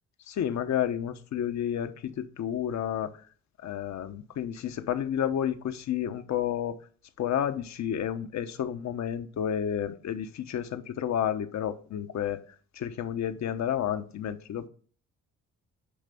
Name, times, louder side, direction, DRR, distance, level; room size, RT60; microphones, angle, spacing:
voice 1, 0.3-3.1 3.6-6.8 7.2-12.4 12.8-14.7, left 9 dB, 65° left, 10 dB, 1.1 m, -31 dB
9.9 x 3.3 x 6.9 m, 0.41 s
cardioid pair, 90°, 30 cm